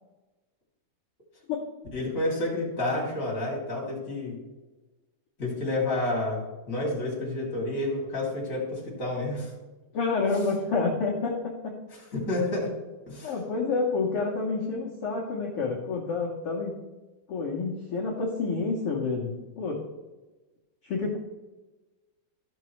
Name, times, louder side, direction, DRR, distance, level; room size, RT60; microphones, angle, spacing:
voice 1, 1.9-4.4 5.4-9.5 10.2-10.3 12.1-12.7 13.1-13.3, left 2 dB, 25° left, -4 dB, 2.6 m, -30 dB
voice 2, 9.9-11.6 13.2-16.7 17.3-19.8 20.8-21.2, left 4 dB, 85° left, -3 dB, 1.2 m, -28 dB
14.5 x 6.0 x 3.2 m, 1.2 s
omnidirectional pair, 4.4 m